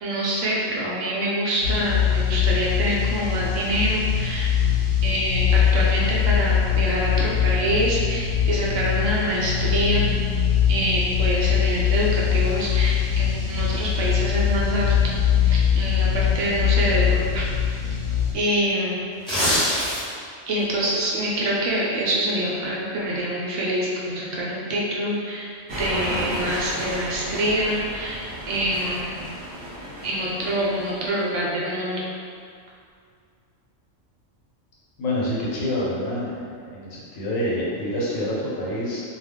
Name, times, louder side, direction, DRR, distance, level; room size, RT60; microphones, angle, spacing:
voice 1, 0.0-4.5 5.0-10.1 10.7-17.4 18.3-19.0 20.5-29.2 30.0-32.0, right 1 dB, 75° right, -5 dB, 1.0 m, -25 dB
sound 1, 1.6-18.3, left 8 dB, 60° left, 0.6 m, -22 dB
sound 2, 19.1-20.3 20.7-20.9, equal, 5° left, 1.0 m, -22 dB
sound 3, 25.7-31.2, equal, 50° right, 0.9 m, -33 dB
voice 2, 35.0-36.4 36.7-39.0, left 1 dB, 85° left, -5 dB, 1.1 m, -27 dB
2.4 x 2.3 x 3.5 m, 2.3 s
omnidirectional pair, 1.3 m